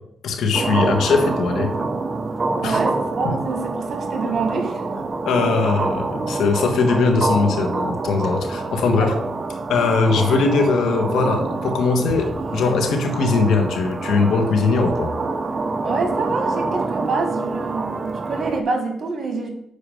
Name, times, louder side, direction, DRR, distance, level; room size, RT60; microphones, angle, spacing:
voice 1, 0.2-1.7 2.6-2.8 3.2-3.3 5.2-9.1 9.7-15.1, left 4 dB, 80° left, 3 dB, 1.4 m, -20 dB
sound 1, 0.5-18.6, right 3 dB, 40° right, 0.7 m, -26 dB
voice 2, 2.6-4.8 8.9-9.2 15.8-19.5, right 3 dB, 55° right, 4 dB, 1.9 m, -26 dB
6.7 x 4.9 x 6.3 m, 0.77 s
cardioid pair, 70°, 0 cm